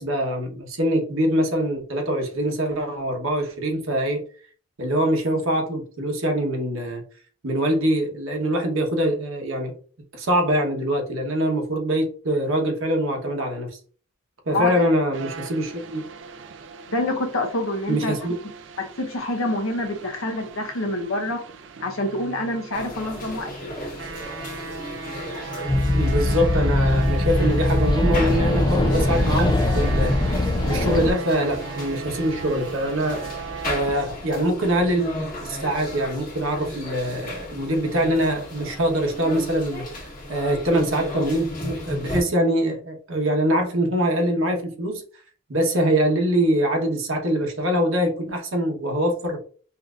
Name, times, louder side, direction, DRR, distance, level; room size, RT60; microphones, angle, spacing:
voice 1, 0.0-4.2 4.8-7.0 7.4-9.7 10.1-13.8 14.4-16.0 17.9-18.4 25.9-33.2 33.6-39.9 40.3-45.0 45.5-49.4, right 1 dB, 75° right, 1.1 m, -23 dB
voice 2, 14.5-14.9 16.9-18.1 18.8-21.4 21.8-23.5, left 1 dB, 75° left, 0.8 m, -26 dB
sound 1, 15.1-34.1, right 5 dB, 55° right, 0.4 m, -37 dB
sound 2, 22.7-42.2, left 1 dB, 40° left, 1.6 m, -35 dB
sound 3, 25.7-31.1, left 1 dB, 20° left, 0.3 m, -21 dB
5.6 x 2.7 x 2.4 m
head